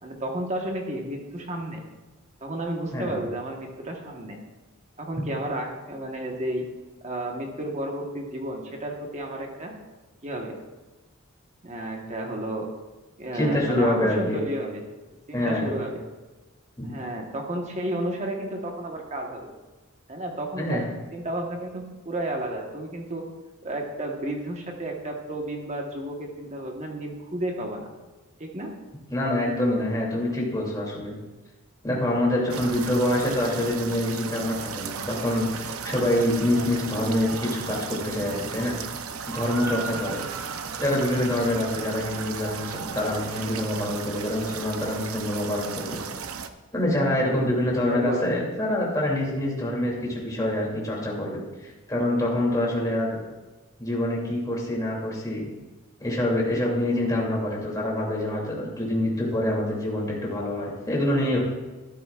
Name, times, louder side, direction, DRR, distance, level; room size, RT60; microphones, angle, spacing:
voice 1, 0.0-1.8 2.4-4.4 5.0-6.6 7.0-9.7 10.2-10.6 11.6-12.7 13.2-14.8 15.3-16.0 16.8-19.5 20.1-23.3 23.6-27.9 28.4-28.7 47.1-47.4 47.9-48.4, right 1 dB, 35° right, 1 dB, 1.3 m, -32 dB
voice 2, 13.3-14.4 15.3-15.8 16.8-17.0 20.6-20.8 29.1-31.2 31.8-38.7 39.3-40.2 40.8-46.0 46.7-53.2 53.8-55.5 56.0-61.4, left 1 dB, 15° left, -4 dB, 2.8 m, -26 dB
sound 1, 32.5-46.5, right 6 dB, 85° right, 0.7 m, -35 dB
13.0 x 12.5 x 2.4 m, 1.2 s
head